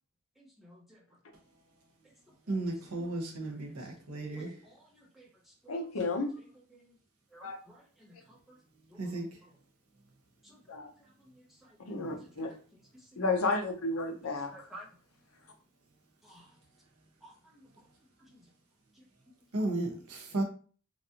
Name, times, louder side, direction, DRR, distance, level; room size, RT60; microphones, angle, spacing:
voice 1, 0.4-1.0 4.4-4.5 5.2-5.3 5.6-5.7 7.3-8.6 8.9-9.0 10.4-10.6 12.4-12.5 14.5-14.9 16.2-16.5 17.2-17.6, right 1 dB, ahead, -3 dB, 0.6 m, -53 dB
voice 2, 2.5-4.5 9.0-9.4 11.9-12.2 19.5-20.4, right 2 dB, 80° right, 2 dB, 0.8 m, -34 dB
voice 3, 5.7-6.3 7.4-7.6 10.7-10.9 11.9-12.5 13.2-14.7, left 3 dB, 70° left, 4 dB, 0.7 m, -32 dB
3.1 x 2.5 x 2.8 m, 0.41 s
head